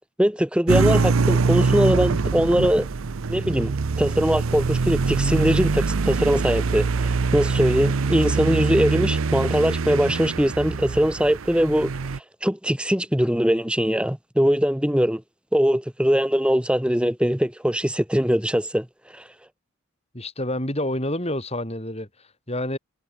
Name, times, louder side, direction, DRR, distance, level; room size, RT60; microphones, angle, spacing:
voice 1, 0.2-2.9 3.3-11.9 12.4-15.2 15.5-18.9 19.1-19.2, equal, 5° right, 1.1 m, -21 dB
sound 1, 0.7-12.2, right 4 dB, 65° right, 0.6 m, -23 dB
voice 2, 20.1-22.8, left 1 dB, 30° left, 6.4 m, -28 dB
head